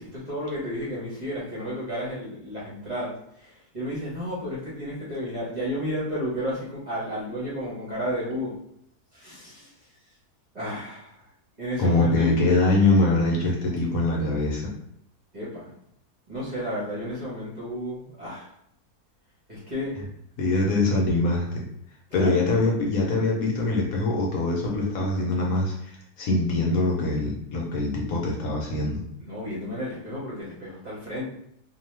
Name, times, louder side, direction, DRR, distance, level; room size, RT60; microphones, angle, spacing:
voice 1, 0.0-8.5 9.1-9.7 10.5-11.2 11.6-12.3 15.3-15.7 16.3-18.5 19.5-20.0 22.1-22.4 29.2-31.3, equal, 35° right, -8 dB, 0.8 m, -32 dB
voice 2, 11.8-14.6 20.4-21.7 22.1-29.0, left 2 dB, 65° left, -2 dB, 1.0 m, -23 dB
2.7 x 2.3 x 3.1 m, 0.71 s
omnidirectional pair, 1.7 m